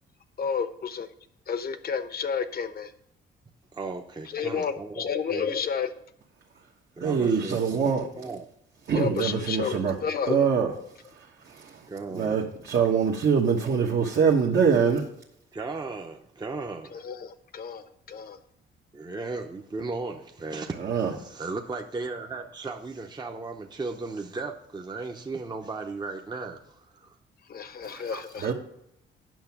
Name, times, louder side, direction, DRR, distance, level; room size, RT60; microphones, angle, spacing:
voice 1, 0.4-1.1 1.5-2.9 4.3-5.9 7.6-7.7 8.9-10.5 10.8-10.9 16.9-18.4 27.5-28.5, left 6 dB, 50° left, 0.9 m, -31 dB
voice 2, 3.7-5.5 7.0-8.5 11.9-12.4 12.7-12.8 15.5-17.0 18.9-27.1 27.9-28.2, right 3 dB, 20° right, 0.8 m, -36 dB
voice 3, 7.0-8.1 8.9-9.9 10.3-10.7 11.5-11.8 12.1-15.1 20.8-21.1 28.4-28.5, right 6 dB, 55° right, 1.3 m, -23 dB
9.2 x 5.9 x 5.9 m
cardioid pair, 90°, 20 cm